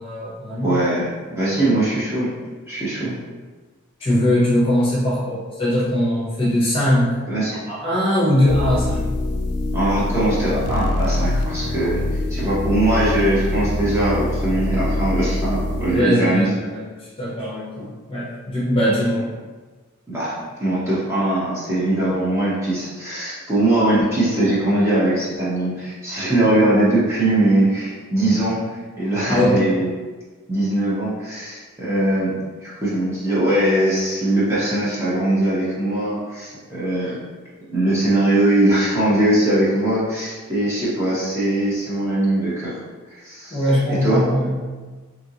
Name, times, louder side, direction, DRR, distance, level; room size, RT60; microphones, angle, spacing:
voice 1, 0.0-0.8 4.0-7.2 7.7-9.1 15.9-19.3 29.3-29.7 43.5-44.6, left 1 dB, 25° left, -7 dB, 0.6 m, -21 dB
voice 2, 0.6-2.3 2.7-3.1 7.3-7.6 9.7-16.5 20.1-28.6 29.0-29.9 30.5-32.3 32.6-37.2 37.7-42.7 43.1-43.6 44.0-44.2, right 1 dB, 10° right, -9 dB, 0.7 m, -21 dB
sound 1, 8.5-16.0, left 1 dB, 90° left, 0.3 m, -24 dB
2.9 x 2.5 x 2.7 m, 1.3 s
head